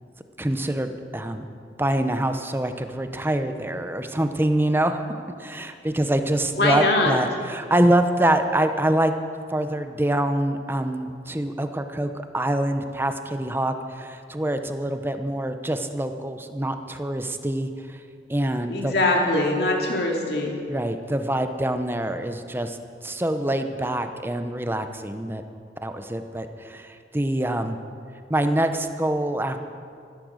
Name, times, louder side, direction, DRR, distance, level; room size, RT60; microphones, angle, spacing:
voice 1, 0.4-1.5 1.8-9.1 9.5-18.0 18.3-18.9 20.7-25.4 25.8-27.8 28.3-29.6, right 1 dB, 15° right, 8 dB, 0.8 m, -25 dB
voice 2, 6.6-7.1 18.7-20.6, left 2 dB, 65° left, 0 dB, 2.6 m, -22 dB
14.5 x 13.0 x 6.4 m, 2.3 s
head